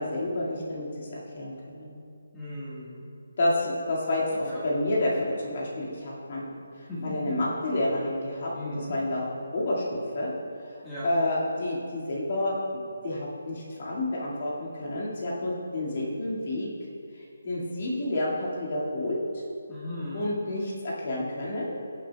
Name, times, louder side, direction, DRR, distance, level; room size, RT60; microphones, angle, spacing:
voice 1, 0.0-2.0 3.4-6.5 6.8-9.3 9.5-10.3 11.0-12.6 13.0-16.7 17.2-19.4 20.1-21.8, left 1 dB, 40° left, -5 dB, 2.1 m, -29 dB
voice 2, 2.3-3.0 4.3-4.6 6.9-7.4 8.5-8.9 10.8-11.1 19.7-20.3, left 1 dB, 10° left, -11 dB, 1.6 m, -37 dB
16.0 x 7.4 x 2.3 m, 2.5 s
hypercardioid pair, 175°, 0 cm